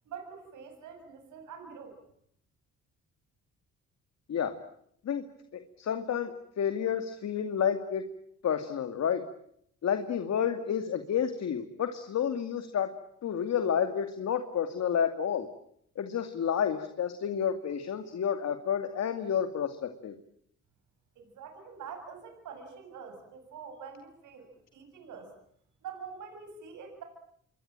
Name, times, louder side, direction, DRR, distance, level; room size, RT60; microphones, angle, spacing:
voice 1, 0.1-2.0 21.2-25.3 25.8-27.0, right 6 dB, 80° right, 5 dB, 7.4 m, -45 dB
voice 2, 5.5-8.0 8.4-9.2 9.8-12.9 13.2-15.5 16.0-20.1, left 8 dB, 60° left, 8 dB, 2.5 m, -30 dB
27.5 x 23.5 x 9.0 m, 0.71 s
cardioid pair, 90°, 30 cm